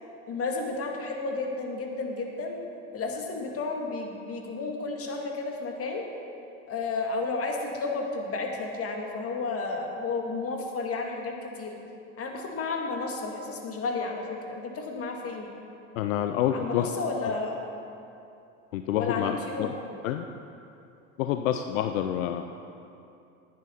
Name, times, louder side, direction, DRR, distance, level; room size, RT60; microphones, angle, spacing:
voice 1, 0.3-2.6 2.9-6.1 6.7-11.8 12.2-15.5 16.5-17.6 18.9-19.7, left 3 dB, 35° left, 2 dB, 2.0 m, -32 dB
voice 2, 16.0-16.9 17.2-17.3 18.7-19.7 20.0-20.2 21.2-22.4, left 10 dB, 75° left, 7 dB, 0.7 m, -28 dB
10.5 x 9.5 x 5.7 m, 2.7 s
hypercardioid pair, 85°, 40 cm